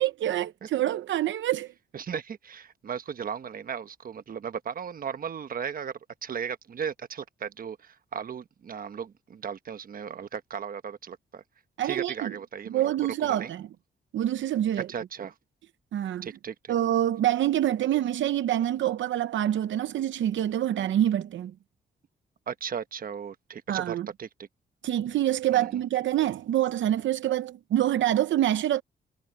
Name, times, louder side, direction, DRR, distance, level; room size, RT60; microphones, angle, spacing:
voice 1, 0.0-1.7 11.8-12.3 12.7-13.7 14.1-14.9 15.9-16.3 16.7-21.5 23.7-24.1 24.8-28.8, right 12 dB, 80° right, 0.7 m, -26 dB
voice 2, 1.9-11.4 11.8-12.9 13.2-13.5 14.9-15.3 16.2-16.7 22.5-24.5 25.5-25.8, right 7 dB, 50° right, 1.1 m, -36 dB
cardioid pair, 120°, 19 cm